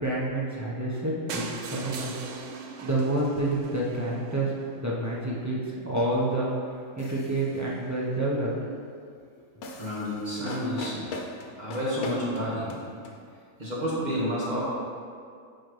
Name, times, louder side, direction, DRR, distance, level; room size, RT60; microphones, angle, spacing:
voice 1, 0.0-2.2 2.8-5.6 5.8-6.5 7.0-8.5 9.5-9.6, right 1 dB, 15° right, -6 dB, 0.8 m, -28 dB
sound 1, 1.3-5.2 5.8-5.9 6.2-6.3 6.5-6.6 6.8-6.9, right 5 dB, 70° right, 0.8 m, -40 dB
sound 2, 7.0-7.7 9.6-13.2, left 2 dB, 90° left, 1.2 m, -40 dB
voice 2, 9.8-11.2 11.6-12.7 13.6-14.6, equal, 30° right, -7 dB, 1.6 m, -30 dB
9.1 x 4.6 x 3.2 m, 2.2 s
omnidirectional pair, 1.5 m